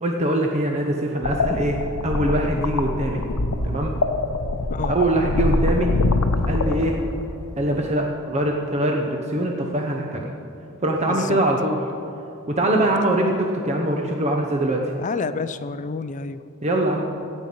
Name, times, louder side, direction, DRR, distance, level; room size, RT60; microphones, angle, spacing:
voice 1, 0.0-1.8 2.0-3.2 3.6-3.9 4.9-5.9 6.5-7.0 7.6-10.3 10.8-11.8 12.5-14.9 16.6-17.0, right 1 dB, 30° right, 1 dB, 0.8 m, -23 dB
sound 1, 1.2-7.3, left 2 dB, 85° left, 0.8 m, -24 dB
voice 2, 11.1-11.4 15.0-16.4, left 4 dB, 35° left, 13 dB, 0.4 m, -29 dB
16.0 x 5.5 x 7.7 m, 2.8 s
head